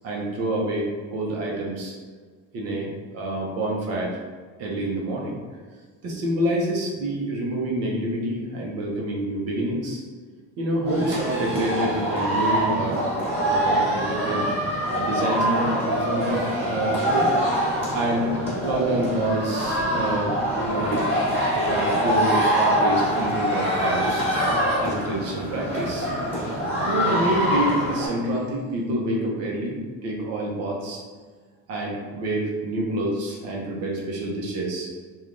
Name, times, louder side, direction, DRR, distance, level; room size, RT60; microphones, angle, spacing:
voice 1, 0.0-1.9 2.5-4.2 4.6-5.4 6.0-10.0 10.6-13.0 13.4-14.5 14.9-17.3 17.9-20.4 20.6-21.0 21.7-24.3 24.8-26.2 26.9-31.0 31.7-34.9, right 1 dB, 45° right, -2 dB, 0.7 m, -27 dB
sound 1, 10.8-28.1, equal, 15° right, 1.4 m, -24 dB
3.2 x 2.3 x 2.5 m, 1.5 s
cardioid pair, 160°, 34 cm